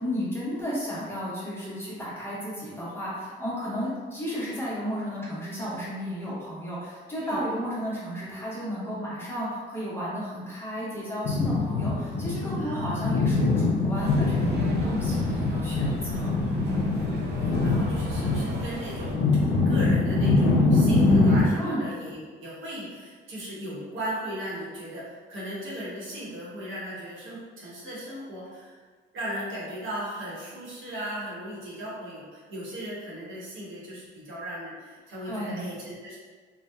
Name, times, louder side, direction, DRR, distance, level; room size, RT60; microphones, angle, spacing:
voice 1, 0.0-16.8 21.6-21.8 35.3-35.6, equal, 10° left, -8 dB, 0.8 m, -33 dB
sound 1, 11.2-21.5, left 3 dB, 80° left, 0.5 m, -24 dB
voice 2, 12.6-13.1 17.0-28.8 29.1-36.2, right 1 dB, 75° right, -7 dB, 0.9 m, -37 dB
sound 2, 13.9-19.1, right 1 dB, 60° right, 0.5 m, -37 dB
2.7 x 2.1 x 2.2 m, 1.5 s
cardioid pair, 90°, 20 cm